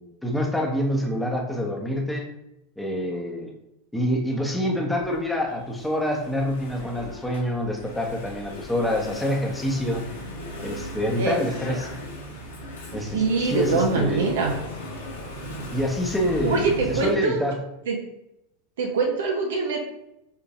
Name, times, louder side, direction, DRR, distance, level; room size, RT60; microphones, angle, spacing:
voice 1, 0.0-2.3 2.8-3.5 3.9-10.1 10.6-11.9 12.9-14.3 15.7-17.6, equal, 5° left, 0 dB, 1.0 m, -26 dB
Engine / Mechanisms, 5.0-17.1, equal, 80° left, 1.3 m, -37 dB
voice 2, 13.1-14.6 16.4-17.4 17.9-18.0 18.8-19.8, right 4 dB, 65° right, 1 dB, 0.7 m, -23 dB
5.4 x 3.8 x 2.4 m, 0.86 s
figure-of-eight pair, 85°, 0 cm